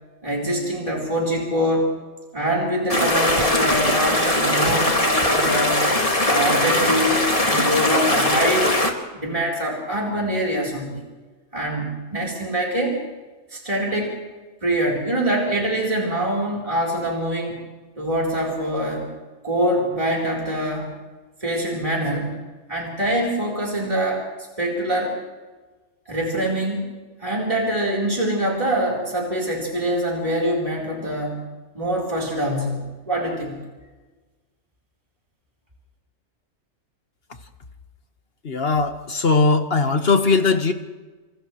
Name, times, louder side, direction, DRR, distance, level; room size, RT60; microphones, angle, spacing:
voice 1, 0.2-1.9 2.3-5.8 6.3-8.7 9.1-11.0 11.5-13.0 13.5-14.2 14.6-17.6 18.0-19.1 19.4-20.9 21.4-22.3 22.7-24.3 24.6-25.2 26.1-26.9 27.2-31.4 31.7-33.6, right 1 dB, 25° right, -3 dB, 4.3 m, -24 dB
sound 1, 2.9-8.9, left 1 dB, 25° left, 2.4 m, -20 dB
voice 2, 38.4-40.7, left 4 dB, 50° left, 6 dB, 1.7 m, -19 dB
29.0 x 28.0 x 3.2 m, 1.3 s
omnidirectional pair, 1.3 m